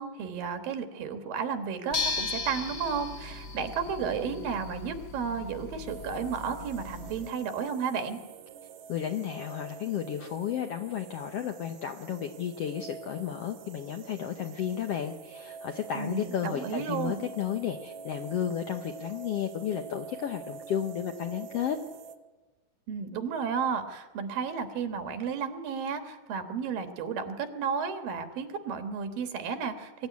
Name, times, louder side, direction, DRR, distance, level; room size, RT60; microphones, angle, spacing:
voice 1, 0.0-8.2 15.9-17.2 22.9-30.1, right 6 dB, 85° right, 7 dB, 3.3 m, -33 dB
sound 1, 1.9-7.3, left 4 dB, 45° left, 1.3 m, -37 dB
sound 2, 5.9-22.2, right 6 dB, 65° right, 2.1 m, -46 dB
voice 2, 8.9-21.8, left 9 dB, 75° left, 6 dB, 1.4 m, -33 dB
23.5 x 13.0 x 9.5 m, 1.2 s
omnidirectional pair, 3.9 m